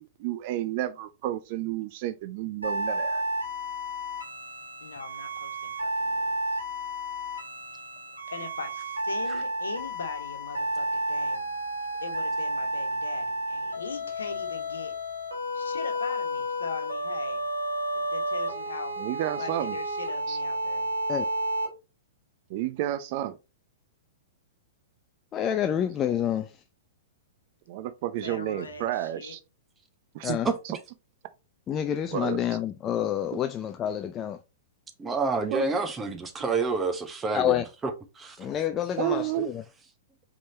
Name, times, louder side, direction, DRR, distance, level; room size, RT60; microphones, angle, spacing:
voice 1, 0.0-3.2 19.0-19.8 20.3-20.4 22.5-23.3 27.7-29.4 30.1-30.4 32.1-32.4 33.3-33.4 35.5-35.6 39.0-39.5, right 13 dB, 45° right, 0.6 m, -31 dB
sound 1, 2.6-21.7, right 1 dB, 90° right, 1.5 m, -31 dB
voice 2, 4.8-6.6 8.3-11.5 12.0-14.9 15.5-17.5 17.9-19.1 19.4-20.9 28.2-29.3, left 4 dB, 80° left, 1.2 m, -40 dB
voice 3, 25.3-26.5 30.2-30.5 31.7-34.4 37.3-37.7 38.4-39.6, left 10 dB, 25° left, 0.4 m, -28 dB
voice 4, 30.2-30.8 35.0-38.4, right 4 dB, 15° right, 1.0 m, -29 dB
5.2 x 3.7 x 2.8 m
figure-of-eight pair, 110°, 0 cm